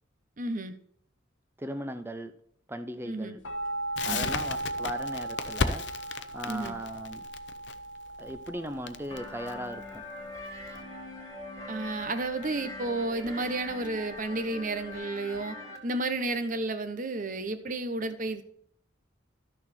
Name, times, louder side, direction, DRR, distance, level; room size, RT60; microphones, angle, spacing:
voice 1, 0.4-0.7 3.1-3.3 4.1-4.3 6.5-6.7 11.7-15.6 15.8-18.4, right 2 dB, 45° right, 10 dB, 0.9 m, -32 dB
voice 2, 1.6-2.3 2.7-3.4 4.0-5.9 6.3-7.3 8.2-10.0, equal, 10° right, 10 dB, 0.7 m, -38 dB
sound 1, 3.4-14.9, right 2 dB, 80° left, 1.3 m, -39 dB
Crackle, 4.0-10.8, left 5 dB, 65° left, 0.7 m, -35 dB
sound 2, 9.1-15.8, left 1 dB, 20° left, 1.9 m, -42 dB
12.5 x 6.5 x 4.3 m, 0.65 s
head